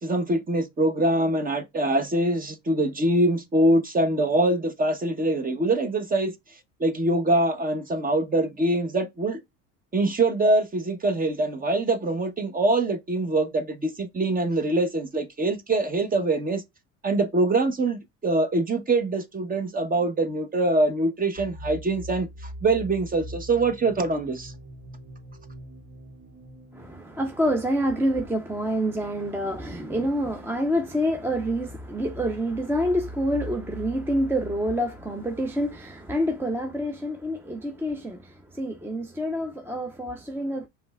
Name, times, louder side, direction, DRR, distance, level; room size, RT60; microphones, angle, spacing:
voice 1, 0.0-6.3 6.8-9.4 9.9-16.6 17.0-22.3 22.6-24.5, right 2 dB, 25° right, 0.9 m, -24 dB
sound 1, 21.4-36.9, equal, 55° right, 2.4 m, -43 dB
voice 2, 26.7-40.7, equal, 5° right, 0.6 m, -27 dB
5.1 x 3.3 x 2.3 m
supercardioid pair, 100°, 35 cm